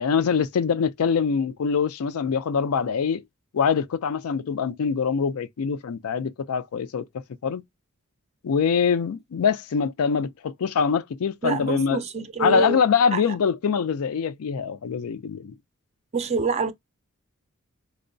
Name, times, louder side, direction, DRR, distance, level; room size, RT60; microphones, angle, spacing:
voice 1, 0.0-3.2 3.5-7.6 8.4-12.0 12.4-15.5, left 6 dB, 80° left, 0.4 m, -24 dB
voice 2, 11.4-12.8 13.1-13.3 16.1-16.7, right 4 dB, 30° right, 0.4 m, -26 dB
4.4 x 2.1 x 2.5 m
head